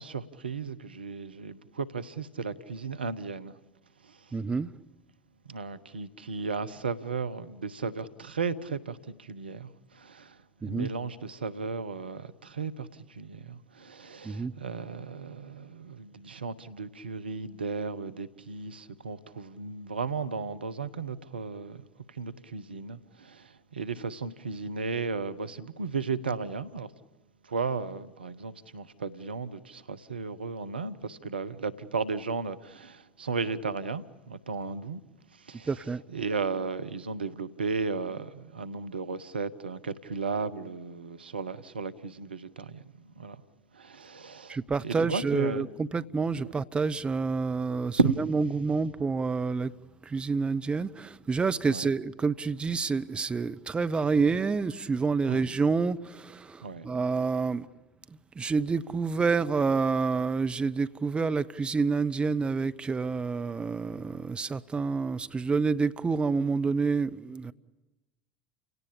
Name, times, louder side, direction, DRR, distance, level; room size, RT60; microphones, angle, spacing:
voice 1, 0.0-3.5 5.5-9.7 9.9-10.3 10.6-21.8 22.1-26.9 27.5-35.0 35.5-42.8 43.2-43.4 43.7-45.7 46.4-46.5 48.0-48.2 51.7-51.9 55.3-55.6 56.6-56.9, right 4 dB, 85° right, 0.9 m, -34 dB
voice 2, 4.3-4.7 10.6-10.9 14.2-14.5 35.7-36.0 44.5-49.7 50.1-57.7 58.4-67.5, right 4 dB, 20° right, 0.8 m, -28 dB
29.5 x 17.5 x 8.7 m
figure-of-eight pair, 75°, 5 cm